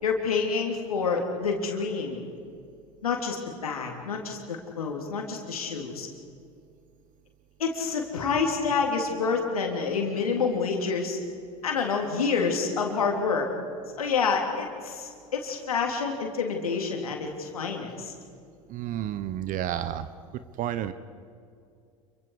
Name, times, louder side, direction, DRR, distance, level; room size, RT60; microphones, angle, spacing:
voice 1, 0.0-2.2 3.0-6.1 7.6-11.2 11.6-13.5 14.0-18.1, left 5 dB, 85° left, 1 dB, 3.4 m, -28 dB
voice 2, 18.7-20.1 20.6-20.9, right 11 dB, 50° right, 13 dB, 1.0 m, -30 dB
28.0 x 24.0 x 4.9 m, 2.4 s
hypercardioid pair, 80°, 18 cm